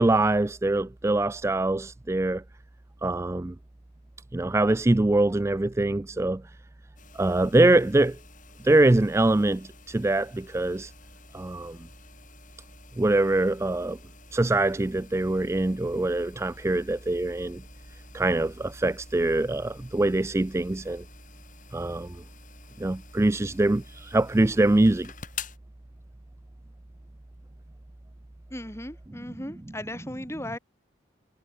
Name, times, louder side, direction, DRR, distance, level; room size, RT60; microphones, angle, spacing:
voice 1, 0.0-2.4 3.0-3.5 4.3-6.4 7.2-8.1 8.6-9.6 9.9-10.3 10.5-10.9 11.3-11.7 13.0-14.0 14.3-17.6 18.1-21.0 21.7-22.1 22.8-23.8 24.1-25.1, right 2 dB, 15° right, 0.3 m, -23 dB
sound 1, 7.0-25.6, left 7 dB, 40° left, 6.1 m, -49 dB
voice 2, 28.5-30.6, left 1 dB, 15° left, 5.9 m, -36 dB
head